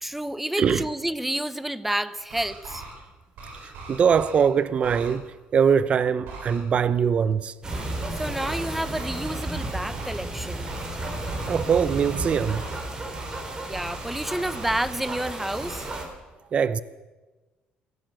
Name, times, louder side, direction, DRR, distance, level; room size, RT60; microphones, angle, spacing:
voice 1, 0.0-2.8 8.1-10.7 13.7-15.9, right 1 dB, 5° right, 0.9 m, -29 dB
sound 1, 2.2-2.9 3.4-4.4 4.8-5.1 6.2-6.6 7.7-8.0 8.4-8.7 8.9-10.2 10.6-12.8 13.1-13.4 13.7-15.3 15.6-16.0, right 3 dB, 75° right, 7.5 m, -40 dB
voice 2, 3.6-7.5 11.5-12.6 16.5-16.8, right 7 dB, 40° right, 0.7 m, -22 dB
sound 2, 7.6-16.0, right 2 dB, 25° right, 4.0 m, -33 dB
22.5 x 16.5 x 7.8 m
cardioid pair, 115°, 3 cm